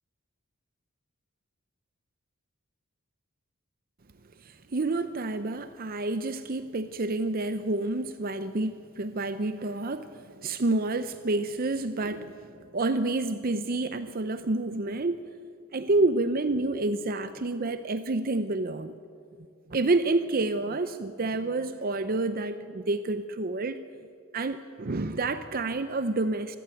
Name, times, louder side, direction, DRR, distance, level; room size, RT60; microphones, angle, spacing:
voice 1, 4.4-15.3 15.7-18.9 19.7-23.8 24.3-26.6, right 2 dB, 40° right, 11 dB, 0.6 m, -29 dB
25.0 x 15.0 x 9.0 m, 2.4 s
head